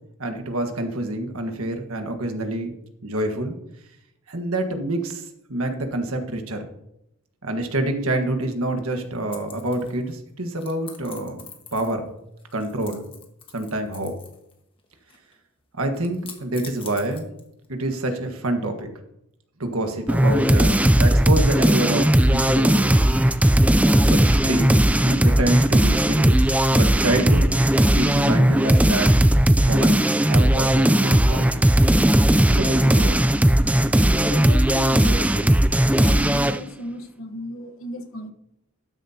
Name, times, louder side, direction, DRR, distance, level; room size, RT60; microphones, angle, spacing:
voice 1, 0.2-2.7 3.0-3.5 4.3-6.7 7.4-11.4 11.7-12.1 12.5-13.1 13.5-14.1 15.7-17.3 17.7-18.9 19.6-23.0 24.0-24.8 25.0-27.5 27.9-29.1 29.6-31.6 32.5-33.2, right 1 dB, 70° right, 5 dB, 1.5 m, -27 dB
sound 1, 9.3-10.1 10.6-12.1 12.4-14.5 14.8-15.3 15.9-17.7, left 6 dB, 25° left, 1.5 m, -44 dB
sound 2, 20.1-36.6, right 1 dB, 5° right, 0.3 m, -17 dB
voice 2, 34.0-35.6 35.9-38.3, left 1 dB, 65° left, 4 dB, 1.3 m, -34 dB
12.5 x 10.0 x 2.9 m, 0.80 s
head